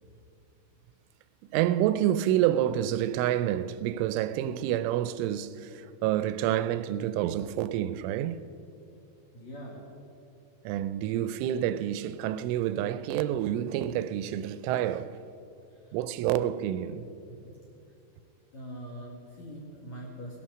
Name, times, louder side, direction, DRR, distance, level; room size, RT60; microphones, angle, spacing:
voice 1, 1.5-8.4 10.6-15.2 15.9-17.0, right 12 dB, 85° right, 3.0 m, -28 dB
voice 2, 9.3-9.8 15.8-16.0 18.5-20.4, equal, 55° left, 2.2 m, -42 dB
18.5 x 11.5 x 6.3 m
omnidirectional pair, 5.6 m